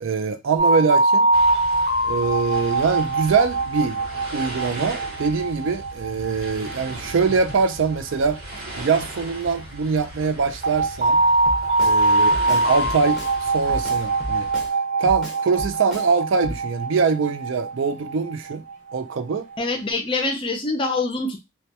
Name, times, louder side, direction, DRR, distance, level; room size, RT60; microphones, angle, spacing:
voice 1, 0.0-1.3 2.1-4.0 4.3-8.4 8.8-11.2 11.8-14.5 15.0-18.6 18.9-19.4, right 5 dB, 60° right, 0.4 m, -23 dB
sound 1, 0.6-9.4 10.6-19.8, right 2 dB, 40° right, 0.8 m, -23 dB
sound 2, 1.3-14.7, right 1 dB, 80° right, 1.2 m, -38 dB
Drum kit, 11.5-12.0 12.3-13.4 13.7-14.7 15.1-16.1 16.4-16.6, equal, ahead, 0.8 m, -34 dB
voice 2, 19.6-21.4, left 3 dB, 25° left, 0.4 m, -25 dB
2.2 x 2.2 x 2.7 m
head